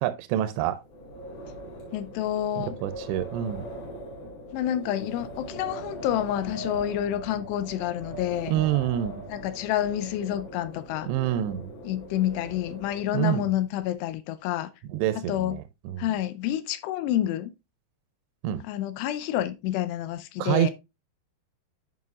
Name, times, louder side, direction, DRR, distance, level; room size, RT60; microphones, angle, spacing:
voice 1, 0.0-0.8 2.6-3.6 8.5-9.2 11.1-11.7 13.1-13.4 14.9-16.1 18.4-18.6 20.4-20.7, right 12 dB, 85° right, 2.7 m, -27 dB
Wind, 0.8-13.4, equal, 50° left, 4.3 m, -41 dB
voice 2, 1.9-2.8 4.5-8.6 9.3-11.1 11.8-14.7 15.1-15.6 16.0-17.5 18.6-20.7, left 12 dB, 85° left, 2.6 m, -28 dB
9.4 x 5.6 x 2.4 m
omnidirectional pair, 5.0 m